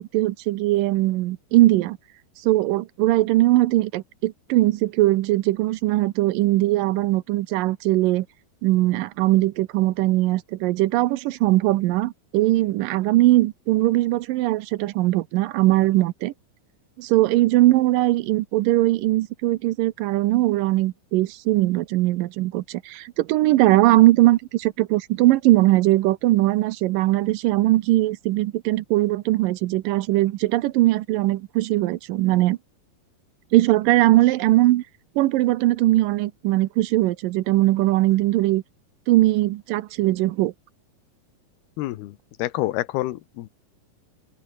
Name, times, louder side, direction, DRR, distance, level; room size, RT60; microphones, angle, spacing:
voice 1, 0.0-2.0 2.4-8.3 8.6-16.3 17.0-32.6 33.5-34.8 35.2-38.6 39.1-40.5, right 17 dB, 75° right, 2.2 m, -20 dB
voice 2, 41.8-43.5, left 16 dB, 85° left, 3.1 m, -28 dB
omnidirectional pair, 4.5 m